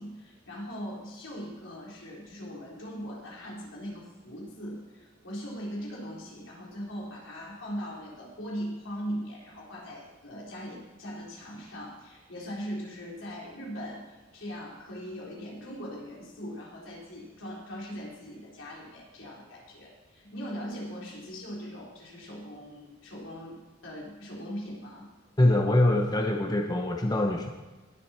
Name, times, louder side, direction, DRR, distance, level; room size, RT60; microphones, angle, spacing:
voice 1, 0.0-25.1, equal, 75° left, -4 dB, 4.0 m, -40 dB
voice 2, 25.4-27.5, left 1 dB, 20° left, 3 dB, 0.8 m, -24 dB
20.0 x 7.7 x 4.4 m, 1.2 s
head